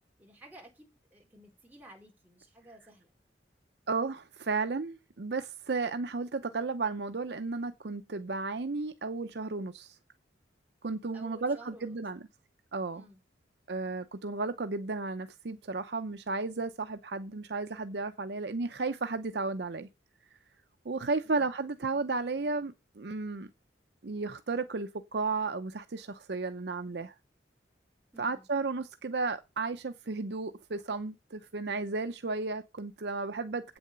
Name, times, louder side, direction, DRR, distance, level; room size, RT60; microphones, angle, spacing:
voice 1, 0.0-3.1 11.1-12.0 12.9-13.2 21.2-21.5 28.1-28.5, right 1 dB, 10° right, 4.4 m, -54 dB
voice 2, 3.9-10.0 10.8-12.2 12.7-13.0 13.7-19.9 20.8-23.5 24.0-27.1 28.2-33.8, right 3 dB, 60° right, 0.7 m, -33 dB
8.4 x 7.0 x 6.8 m
head